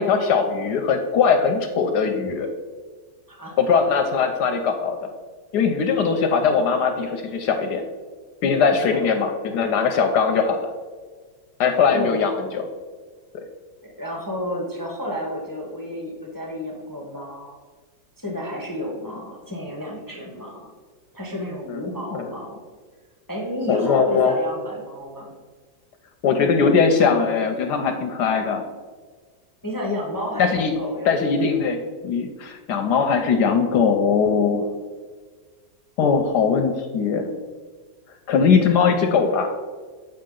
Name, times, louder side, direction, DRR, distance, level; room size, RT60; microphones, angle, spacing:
voice 1, 0.0-2.5 3.6-5.0 5.5-7.8 8.4-10.7 11.6-12.7 21.7-21.8 22.1-22.3 23.7-24.3 26.2-28.6 30.4-30.7 31.1-31.8 32.0-34.7 36.0-37.2 38.3-39.5, left 5 dB, 70° left, 5 dB, 1.1 m, -20 dB
voice 2, 8.7-9.1 11.9-12.2 13.8-17.6 18.2-20.6 21.1-22.6 23.3-25.3 29.6-31.1, left 1 dB, 20° left, -1 dB, 0.6 m, -31 dB
7.7 x 5.4 x 3.8 m, 1.5 s
omnidirectional pair, 2.0 m